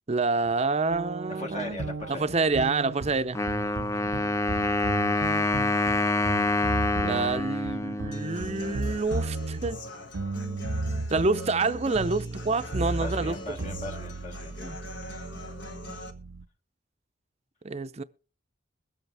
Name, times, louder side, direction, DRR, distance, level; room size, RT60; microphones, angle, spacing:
voice 1, 0.1-1.8 2.1-3.4 7.0-9.8 11.1-13.4 14.6-14.7 17.6-18.0, right 3 dB, 35° right, 0.6 m, -27 dB
sound 1, 0.9-16.5, right 2 dB, 80° right, 0.7 m, -35 dB
voice 2, 1.3-2.3 4.0-4.3 13.0-14.6 15.1-15.2, left 2 dB, 35° left, 1.2 m, -39 dB
Wind instrument woodwind instrument, 3.3-9.0, left 2 dB, 15° left, 0.5 m, -27 dB
Human voice / Acoustic guitar, 8.1-16.1, left 2 dB, 65° left, 1.6 m, -43 dB
21.5 x 8.1 x 3.4 m
head